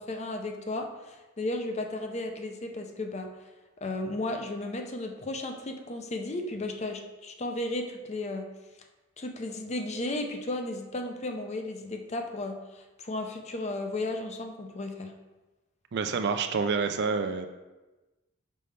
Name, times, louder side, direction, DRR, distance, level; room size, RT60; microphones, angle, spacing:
voice 1, 0.0-3.3 3.8-8.5 9.2-15.1, left 2 dB, 30° left, 4 dB, 0.5 m, -34 dB
voice 2, 15.9-17.5, right 5 dB, 55° right, 7 dB, 0.4 m, -28 dB
5.4 x 5.3 x 3.3 m, 1.1 s
head